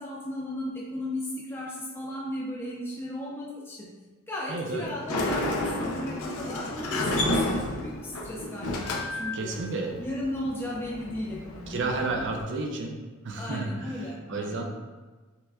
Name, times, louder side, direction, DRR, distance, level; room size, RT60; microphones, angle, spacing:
voice 1, 0.0-3.9 4.3-9.5 10.0-12.2 13.4-14.6, left 1 dB, 10° left, -5 dB, 0.4 m, -36 dB
voice 2, 4.5-4.9 9.3-10.0 11.7-13.0 13.2-14.6, right 3 dB, 60° right, 2 dB, 0.5 m, -31 dB
Sliding door, 4.9-12.4, left 1 dB, 85° left, 0.6 m, -31 dB
5.6 x 2.1 x 2.4 m, 1.3 s
head